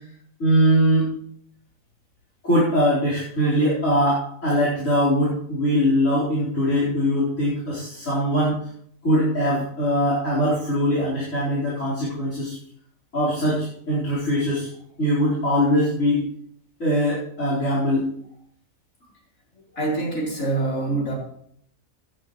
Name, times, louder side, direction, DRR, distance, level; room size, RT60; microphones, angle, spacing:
voice 1, 0.4-1.1 2.4-8.6 9.0-12.6 13.1-14.7 15.0-16.3 16.8-18.1, equal, 65° left, -10 dB, 5.2 m, -21 dB
voice 2, 19.8-21.1, right 2 dB, 80° left, -3 dB, 4.8 m, -25 dB
18.0 x 10.0 x 3.2 m, 0.64 s
omnidirectional pair, 1.4 m